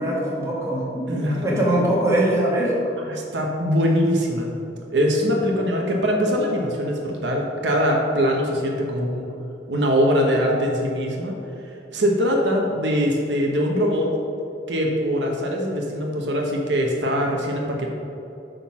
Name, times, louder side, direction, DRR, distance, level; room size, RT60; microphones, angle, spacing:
voice 1, 0.0-2.7, right 1 dB, 15° right, -5 dB, 1.6 m, -22 dB
voice 2, 1.1-1.4 3.1-4.5 4.9-9.3 9.7-11.3 11.9-14.1 14.7-17.9, equal, 80° right, 0 dB, 1.1 m, -22 dB
8.7 x 3.9 x 6.0 m, 2.8 s
head